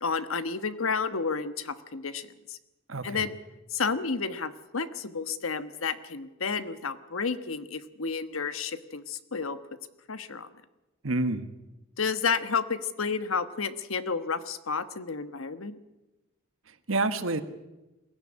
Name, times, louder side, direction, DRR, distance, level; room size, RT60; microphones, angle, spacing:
voice 1, 0.0-2.6 3.0-3.3 3.7-9.6 10.1-10.5 12.0-15.8, left 5 dB, 90° left, 11 dB, 1.3 m, -31 dB
voice 2, 2.9-3.2 11.0-11.5 16.7-17.4, right 2 dB, 75° right, 9 dB, 1.5 m, -28 dB
22.0 x 16.5 x 9.8 m, 1.0 s
head